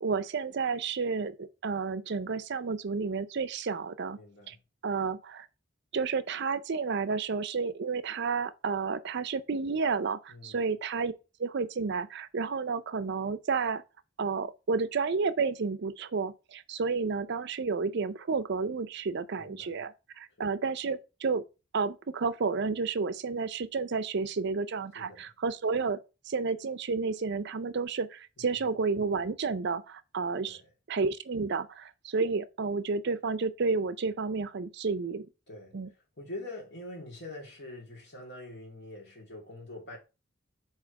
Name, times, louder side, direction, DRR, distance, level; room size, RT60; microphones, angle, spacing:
voice 1, 0.0-4.2 4.5-4.6 4.8-5.5 5.9-11.1 11.4-13.8 14.2-21.4 21.7-26.0 26.3-30.6 30.9-35.3 35.7-35.9, right 4 dB, 60° right, 0.5 m, -31 dB
voice 2, 4.1-4.6 10.3-10.6 19.4-19.8 20.4-20.5 24.9-25.3 28.4-28.6 30.4-30.7 35.5-35.7 36.2-40.0, left 2 dB, 60° left, 2.5 m, -44 dB
4.8 x 4.2 x 5.1 m
head